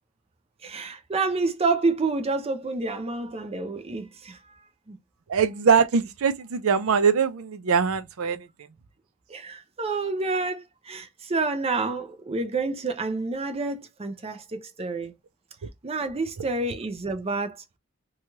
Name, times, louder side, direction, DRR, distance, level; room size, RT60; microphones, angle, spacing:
voice 1, 0.6-4.4 4.9-5.0 9.3-15.1 15.8-17.6, right 3 dB, 30° right, 0.5 m, -28 dB
voice 2, 5.3-8.5, right 6 dB, 75° right, 0.5 m, -22 dB
2.9 x 2.3 x 2.9 m
head